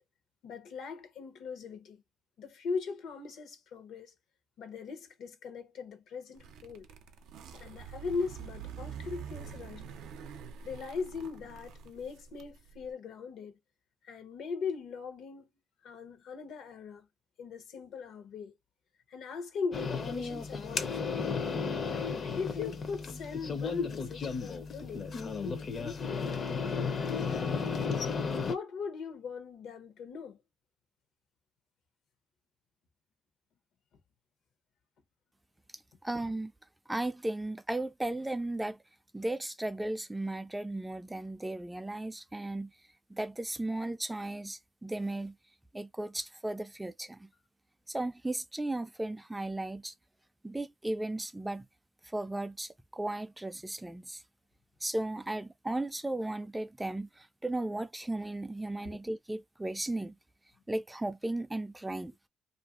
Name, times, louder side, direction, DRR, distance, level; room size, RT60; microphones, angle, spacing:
voice 1, 0.4-2.0 2.4-4.1 4.6-6.9 7.5-9.9 10.6-13.6 14.0-15.5 15.8-17.1 17.4-18.6 19.1-21.5 21.9-25.1 25.6-26.3 26.7-27.8 28.4-30.4 58.8-59.0, left 5 dB, 75° left, 0.8 m, -40 dB
sound 1, 6.4-12.9, right 7 dB, 90° right, 0.4 m, -46 dB
sound 2, 19.7-28.6, left 5 dB, 50° left, 0.5 m, -34 dB
voice 2, 35.7-36.5 36.9-38.8 39.1-42.7 43.1-45.4 45.7-47.3 47.9-49.9 50.4-51.7 52.0-54.2 54.8-60.2 60.7-62.1, right 1 dB, 10° right, 0.3 m, -35 dB
2.7 x 2.5 x 2.4 m
cardioid pair, 90°, 0 cm